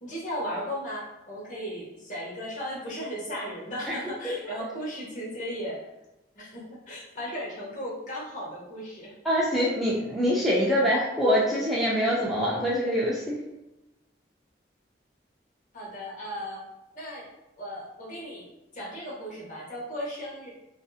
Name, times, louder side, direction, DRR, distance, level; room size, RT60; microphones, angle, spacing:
voice 1, 0.0-5.8 6.4-9.2 15.7-16.6 16.9-17.3 17.6-18.4 18.7-20.5, equal, 45° left, -5 dB, 0.8 m, -36 dB
voice 2, 9.2-13.4, equal, ahead, -7 dB, 0.3 m, -24 dB
2.6 x 2.5 x 2.3 m, 0.94 s
head